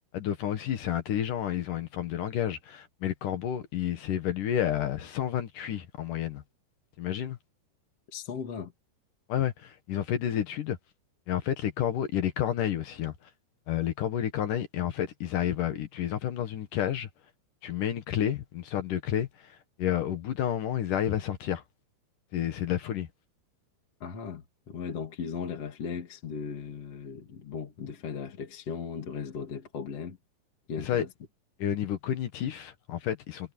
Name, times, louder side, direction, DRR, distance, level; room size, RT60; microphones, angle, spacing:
voice 1, 0.1-6.4 7.0-7.4 9.3-10.8 11.3-13.1 13.7-17.1 17.6-21.6 22.3-23.1 30.8-31.1 31.6-33.5, left 10 dB, 60° left, 2.6 m, -30 dB
voice 2, 8.1-8.7 24.0-30.2 30.7-31.1, left 6 dB, 40° left, 2.8 m, -37 dB
omnidirectional pair, 5.0 m